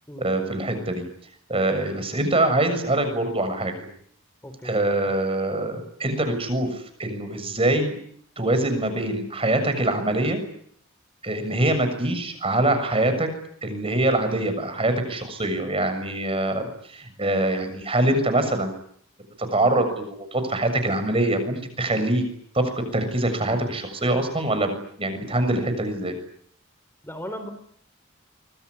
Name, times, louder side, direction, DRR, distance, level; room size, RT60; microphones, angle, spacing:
voice 1, 0.2-1.0 1.5-3.8 4.6-8.0 8.4-10.4 11.2-13.3 13.6-18.7 19.5-22.2 22.5-26.1, right 1 dB, 25° right, 9 dB, 7.0 m, -24 dB
voice 2, 27.0-27.5, equal, 10° left, 8 dB, 3.7 m, -36 dB
25.0 x 22.5 x 9.8 m, 0.65 s
head